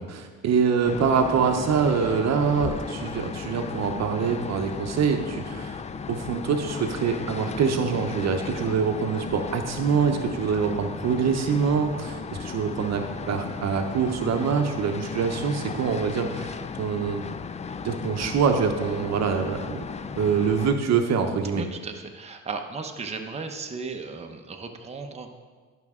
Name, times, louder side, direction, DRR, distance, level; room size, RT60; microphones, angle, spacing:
voice 1, 0.0-5.8 6.1-17.2 17.8-19.8 20.2-21.6, right 6 dB, 60° right, 5 dB, 0.8 m, -25 dB
sound 1, 0.8-20.8, left 5 dB, 25° left, 0.3 m, -35 dB
voice 2, 21.5-25.3, right 4 dB, 20° right, 3 dB, 0.8 m, -36 dB
11.5 x 5.9 x 3.6 m, 1.5 s
cardioid pair, 90°, 30 cm